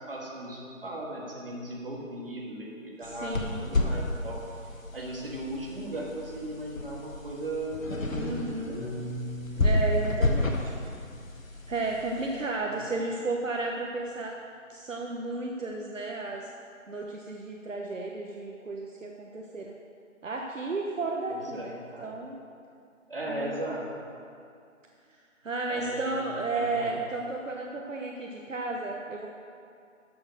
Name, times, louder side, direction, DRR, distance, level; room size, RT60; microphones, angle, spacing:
voice 1, 0.0-4.4 4.9-9.0 12.6-12.9 21.3-22.1 23.1-24.1 25.7-26.1 26.5-27.0, right 1 dB, 45° right, -3 dB, 1.8 m, -37 dB
sound 1, 3.0-12.4, left 2 dB, 75° left, 1.4 m, -31 dB
voice 2, 3.0-3.6 8.1-8.8 9.6-10.7 11.7-14.4 14.7-16.5 16.9-19.7 20.2-22.4 23.3-23.5 25.4-29.3, right 3 dB, 70° right, 0 dB, 1.0 m, -33 dB
Piano, 8.8-13.2, left 1 dB, 30° left, 1.6 m, -42 dB
13.0 x 4.5 x 6.4 m, 2.5 s
figure-of-eight pair, 175°, 40 cm